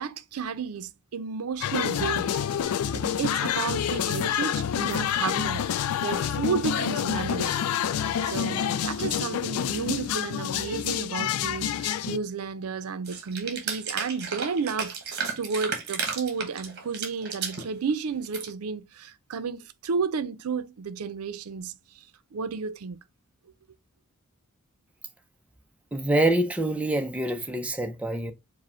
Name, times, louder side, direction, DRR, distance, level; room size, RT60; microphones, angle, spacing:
voice 1, 0.0-2.4 2.9-7.5 8.2-22.0 22.3-23.0, right 5 dB, 80° right, 0.5 m, -32 dB
sound 1, 1.6-12.2, left 9 dB, 85° left, 0.3 m, -28 dB
sound 2, 13.1-17.7 18.1-18.5, right 5 dB, 50° right, 1.2 m, -33 dB
voice 2, 25.9-28.3, right 1 dB, 5° right, 0.4 m, -25 dB
4.9 x 2.1 x 4.3 m
head